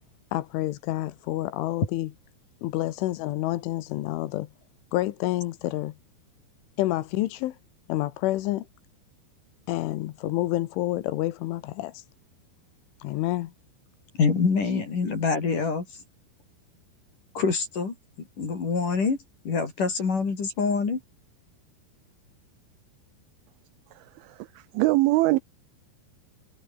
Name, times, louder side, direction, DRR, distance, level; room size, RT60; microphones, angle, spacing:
voice 1, 0.3-2.1 2.6-4.5 4.9-6.0 6.8-7.6 7.9-8.7 9.7-12.1 13.0-13.5, left 16 dB, 80° left, 3.6 m, -28 dB
voice 2, 14.2-16.0 17.3-18.0 18.4-19.2 19.4-21.0, left 4 dB, 40° left, 5.9 m, -25 dB
voice 3, 23.9-25.4, right 20 dB, 80° right, 3.1 m, -24 dB
omnidirectional pair, 5.7 m